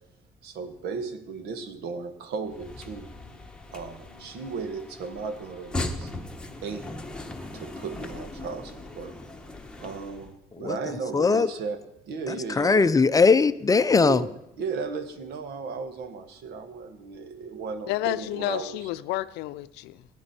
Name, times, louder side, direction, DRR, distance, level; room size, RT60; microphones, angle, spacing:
voice 1, 0.4-3.1 3.7-6.1 6.6-6.9 7.5-9.2 9.8-11.8 12.1-12.8 13.9-18.9, right 4 dB, 75° right, 1.6 m, -35 dB
sound 1, 2.4-10.3, left 2 dB, 5° left, 1.3 m, -38 dB
voice 2, 11.1-11.5 12.3-14.2, left 4 dB, 20° left, 0.5 m, -20 dB
voice 3, 17.9-20.1, left 16 dB, 90° left, 0.6 m, -30 dB
18.5 x 10.0 x 4.4 m
cardioid pair, 110°, 17 cm